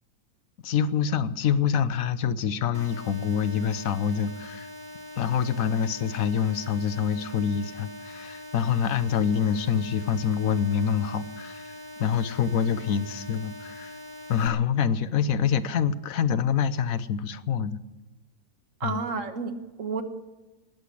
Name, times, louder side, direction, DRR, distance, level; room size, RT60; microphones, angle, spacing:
voice 1, 0.6-4.7 5.2-14.0 14.3-17.8 18.8-19.0, left 7 dB, 65° left, 14 dB, 1.2 m, -26 dB
sound 1, 2.7-14.5, left 1 dB, 30° right, 2.0 m, -43 dB
voice 2, 18.8-20.0, right 4 dB, 60° right, 7 dB, 1.7 m, -31 dB
20.0 x 8.0 x 8.4 m, 1.1 s
omnidirectional pair, 1.6 m